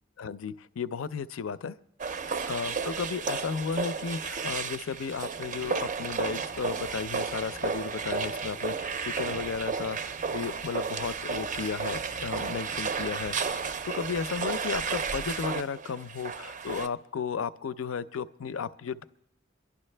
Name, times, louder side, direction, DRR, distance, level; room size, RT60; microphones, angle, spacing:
voice 1, 0.2-1.7 2.5-19.0, left 5 dB, 80° left, 15 dB, 0.5 m, -34 dB
sound 1, 2.0-16.9, right 5 dB, 40° right, 0.5 m, -33 dB
26.0 x 11.5 x 3.3 m, 0.82 s
head